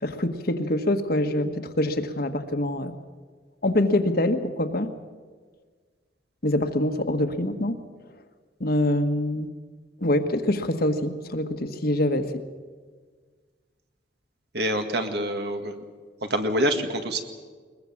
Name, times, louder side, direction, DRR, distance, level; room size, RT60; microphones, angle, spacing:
voice 1, 0.0-1.5 1.8-3.0 3.6-4.9 6.4-7.8 8.6-9.5 10.0-12.2, left 1 dB, 55° left, 7 dB, 1.5 m, -24 dB
voice 2, 14.5-15.8 16.2-17.2, right 1 dB, 60° right, 6 dB, 2.1 m, -26 dB
21.5 x 21.0 x 7.3 m, 1.5 s
head